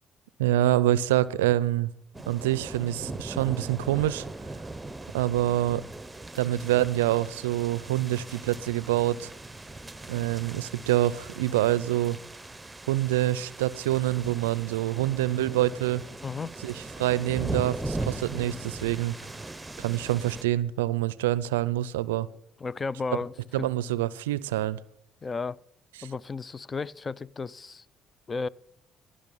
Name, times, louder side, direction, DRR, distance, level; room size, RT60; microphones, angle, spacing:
voice 1, 0.4-1.9 2.3-4.3 5.1-5.8 6.3-9.3 10.1-12.2 12.9-16.0 16.6-19.1 19.8-22.3 23.5-24.8 26.0-26.1, right 14 dB, 90° right, 0.4 m, -26 dB
sound 1, 2.1-20.4, right 2 dB, 15° right, 0.8 m, -39 dB
voice 2, 16.2-16.5 22.6-23.7 25.2-25.6 26.0-27.9 28.3-28.5, left 4 dB, 35° left, 0.5 m, -33 dB
16.5 x 6.3 x 5.5 m
hypercardioid pair, 55°, 0 cm